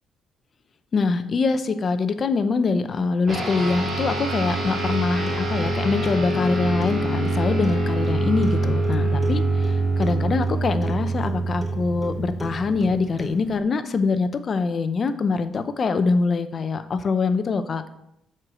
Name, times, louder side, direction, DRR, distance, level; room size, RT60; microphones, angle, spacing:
voice 1, 0.9-17.9, left 4 dB, 40° left, 10 dB, 0.7 m, -24 dB
sound 1, 3.3-13.0, right 2 dB, 45° right, 3.6 m, -25 dB
Clock, 4.5-13.6, right 1 dB, 15° right, 1.1 m, -39 dB
7.8 x 4.5 x 6.3 m, 0.78 s
cardioid pair, 120°, 0 cm